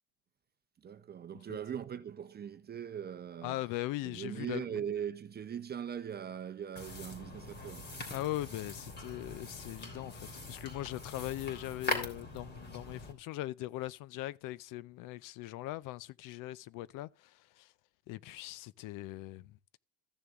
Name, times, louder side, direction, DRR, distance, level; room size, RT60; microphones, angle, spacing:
voice 1, 0.8-3.6 4.0-8.0, right 8 dB, 25° right, 0.7 m, -40 dB
voice 2, 3.4-4.8 8.1-17.3 17.6-17.7 18.1-19.8, left 16 dB, 65° left, 0.6 m, -40 dB
sound 1, 6.8-13.1, left 2 dB, 30° left, 3.3 m, -42 dB
14.0 x 6.8 x 3.6 m
cardioid pair, 125°, 35 cm